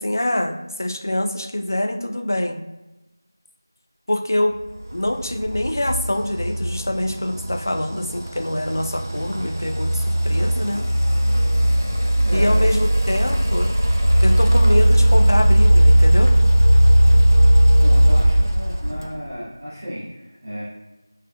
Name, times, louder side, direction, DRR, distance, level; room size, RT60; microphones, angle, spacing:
voice 1, 0.0-2.6 4.1-4.6 4.9-10.8 12.3-13.7 14.2-16.4, left 1 dB, 55° left, 5 dB, 0.4 m, -25 dB
sound 1, 4.8-19.3, equal, 55° right, 0.4 m, -17 dB
voice 2, 12.2-12.7 17.8-20.6, equal, 30° right, -12 dB, 0.9 m, -33 dB
3.5 x 3.2 x 2.2 m, 1.0 s
figure-of-eight pair, 175°, 2 cm